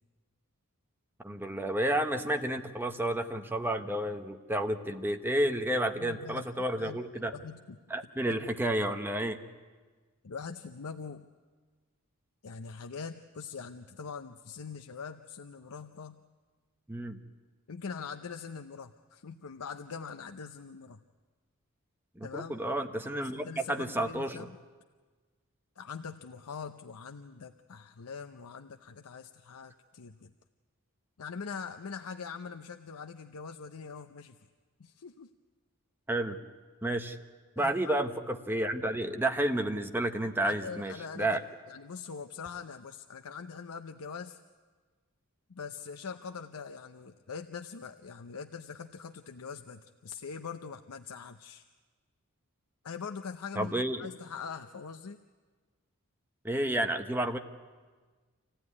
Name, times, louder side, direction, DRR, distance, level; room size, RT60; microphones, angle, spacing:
voice 1, 1.2-7.3 7.9-9.4 16.9-17.2 22.2-24.4 36.1-36.4 36.8-37.2 37.6-41.4 53.6-54.1 56.4-57.4, right 1 dB, 10° right, 6 dB, 1.0 m, -31 dB
voice 2, 6.0-6.5 6.7-7.8 8.2-8.5 10.2-11.3 12.4-16.2 17.7-21.0 22.2-22.6 23.2-24.6 25.8-30.3 31.2-34.4 34.8-35.3 37.6-38.0 40.4-44.4 45.5-51.6 52.8-55.2, left 5 dB, 85° left, 8 dB, 0.7 m, -43 dB
26.0 x 16.0 x 9.7 m, 1.4 s
head